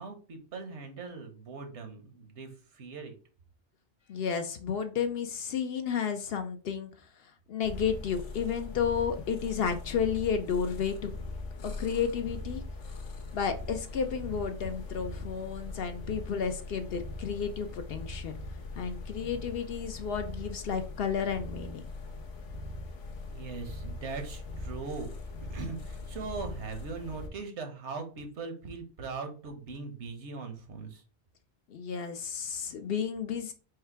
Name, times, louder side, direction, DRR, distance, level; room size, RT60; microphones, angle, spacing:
voice 1, 0.0-3.2 14.6-14.7 23.3-25.1 25.5-31.0, right 4 dB, 75° right, 5 dB, 1.2 m, -40 dB
voice 2, 4.1-6.9 7.5-11.1 11.6-12.6 13.3-18.4 18.8-21.8 31.7-33.5, left 7 dB, 65° left, 8 dB, 0.7 m, -32 dB
sound 1, 7.6-27.3, left 3 dB, 85° left, 1.1 m, -41 dB
4.8 x 2.1 x 4.5 m, 0.37 s
omnidirectional pair, 1.2 m